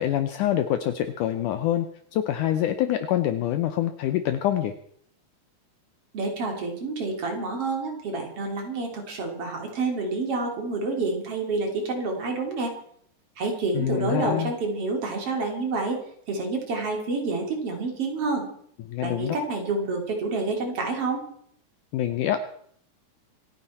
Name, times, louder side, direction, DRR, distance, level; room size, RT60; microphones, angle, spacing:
voice 1, 0.0-4.7 13.7-14.5 18.9-19.4 21.9-22.4, left 11 dB, 75° left, 9 dB, 2.1 m, -25 dB
voice 2, 6.1-12.7 13.4-16.0 16.3-18.4 19.0-21.2, right 3 dB, 45° right, 2 dB, 3.5 m, -28 dB
26.5 x 10.5 x 4.3 m, 0.67 s
omnidirectional pair, 4.0 m